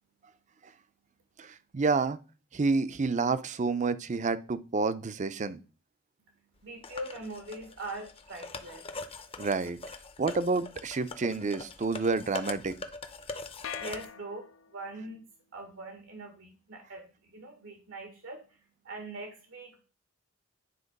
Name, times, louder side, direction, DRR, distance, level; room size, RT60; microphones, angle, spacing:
voice 1, 1.4-2.2 2.5-5.6 9.4-9.8 10.2-12.8, right 4 dB, 40° right, 0.5 m, -29 dB
voice 2, 6.6-8.8 13.8-15.2 15.5-17.1 17.3-18.6 18.8-19.8, right 2 dB, 90° right, 1.5 m, -42 dB
sound 1, 6.8-14.0, left 3 dB, 30° left, 0.6 m, -42 dB
sound 2, 13.6-15.0, left 8 dB, 75° left, 0.5 m, -43 dB
9.3 x 3.5 x 5.3 m
head